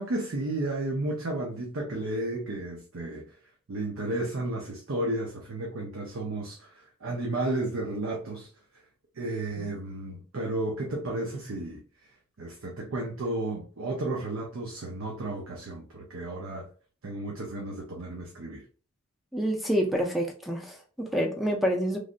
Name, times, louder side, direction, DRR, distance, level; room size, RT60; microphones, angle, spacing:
voice 1, 0.0-3.2 3.7-8.5 9.1-11.8 12.4-16.7 17.0-18.6, right 2 dB, 75° right, 0.7 m, -33 dB
voice 2, 19.3-22.0, equal, ahead, 0.5 m, -28 dB
3.2 x 2.5 x 2.5 m
head